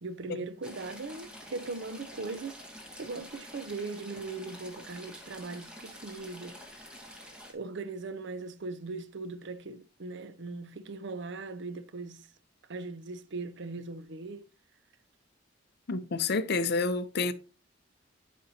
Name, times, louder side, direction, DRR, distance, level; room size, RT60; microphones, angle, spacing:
voice 1, 0.0-7.1 7.5-12.3 12.7-14.4, right 3 dB, 60° right, 0.6 m, -39 dB
Stream / Trickle dribble, 0.6-7.5, equal, 5° right, 1.5 m, -48 dB
voice 2, 15.9-17.3, left 3 dB, 55° left, 0.6 m, -29 dB
12.0 x 5.3 x 2.7 m
head